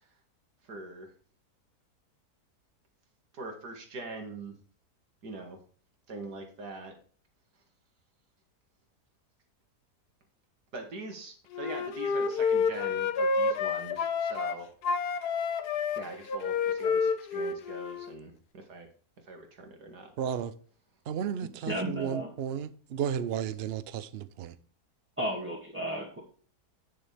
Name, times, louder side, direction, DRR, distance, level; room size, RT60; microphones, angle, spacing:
voice 1, 0.7-1.1 3.3-4.6 5.2-5.6 6.1-6.9 10.7-14.7 16.0-18.9 19.3-20.1, right 2 dB, 85° right, 2.5 m, -42 dB
Wind instrument woodwind instrument, 11.5-14.6 14.8-18.1, left 5 dB, 80° left, 1.4 m, -29 dB
voice 2, 20.2-20.5 21.1-24.5, right 8 dB, 55° right, 0.7 m, -33 dB
voice 3, 21.6-22.3 25.2-26.2, right 1 dB, 10° right, 2.1 m, -33 dB
9.1 x 7.0 x 3.4 m
omnidirectional pair, 1.7 m